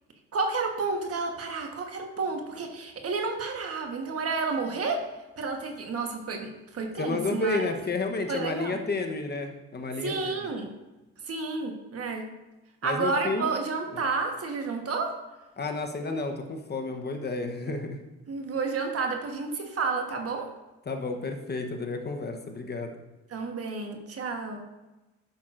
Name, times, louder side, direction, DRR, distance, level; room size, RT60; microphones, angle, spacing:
voice 1, 0.3-5.0 5.4-7.7 8.3-8.8 10.0-10.7 11.2-12.2 12.8-15.1 17.6-17.8 18.3-20.5 23.3-24.6, right 4 dB, 50° right, 3 dB, 1.3 m, -31 dB
voice 2, 7.0-10.3 12.8-13.5 15.6-18.0 20.9-22.9, left 3 dB, 35° left, 4 dB, 1.0 m, -31 dB
11.5 x 5.9 x 2.5 m, 1.1 s
cardioid pair, 90°, 30 cm